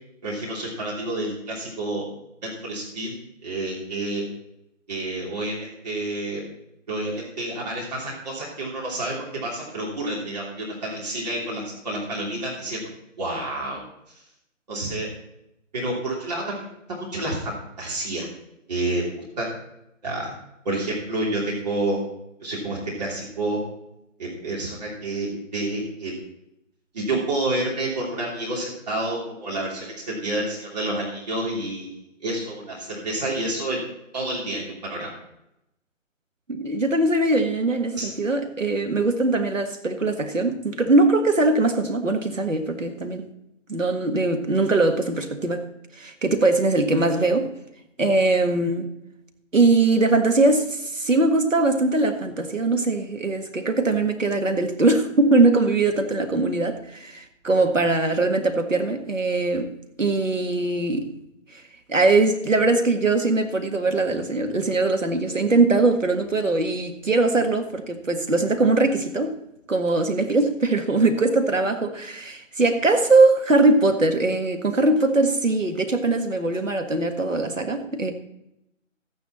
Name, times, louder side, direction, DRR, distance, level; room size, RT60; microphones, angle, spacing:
voice 1, 0.2-2.0 2.4-3.1 3.4-4.2 4.9-6.4 6.9-12.8 13.2-13.8 14.7-15.1 15.7-18.3 18.7-19.5 20.0-20.3 20.6-22.0 22.4-23.6 24.2-26.2 26.9-33.8 34.1-35.1 37.9-38.1, right 2 dB, 30° right, 3.0 m, -29 dB
voice 2, 36.5-43.2 43.7-45.7 46.0-47.5 48.0-48.9 49.5-59.7 60.0-61.1 61.9-69.3 69.7-78.1, right 2 dB, 70° right, 1.8 m, -21 dB
14.0 x 9.6 x 4.2 m
figure-of-eight pair, 150°, 39 cm